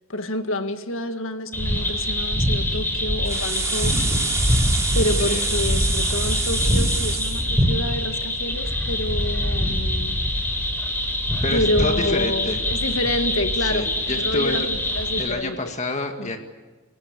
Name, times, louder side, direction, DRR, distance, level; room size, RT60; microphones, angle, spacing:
voice 1, 0.1-3.9 4.9-10.2 11.5-13.9 14.2-15.7 16.2-16.3, left 1 dB, 70° left, 7 dB, 1.9 m, -28 dB
sound 1, 1.5-15.2, left 1 dB, 10° left, 5.0 m, -24 dB
sound 2, 3.3-7.4, right 4 dB, 15° right, 2.9 m, -28 dB
voice 2, 11.4-12.6 13.7-14.7 15.2-16.4, left 2 dB, 35° left, 4 dB, 1.9 m, -28 dB
28.0 x 17.0 x 8.4 m, 1.3 s
head